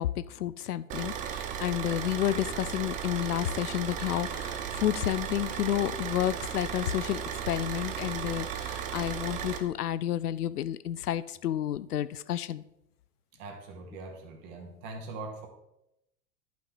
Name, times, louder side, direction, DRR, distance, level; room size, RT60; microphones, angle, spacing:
voice 1, 0.0-7.2 7.5-12.6, left 12 dB, 65° left, 16 dB, 0.5 m, -30 dB
Car / Idling, 0.9-9.6, right 8 dB, 15° right, 0.5 m, -35 dB
voice 2, 13.4-15.5, right 3 dB, 40° right, 3 dB, 2.1 m, -42 dB
11.0 x 5.8 x 4.1 m, 0.86 s
figure-of-eight pair, 95°, 49 cm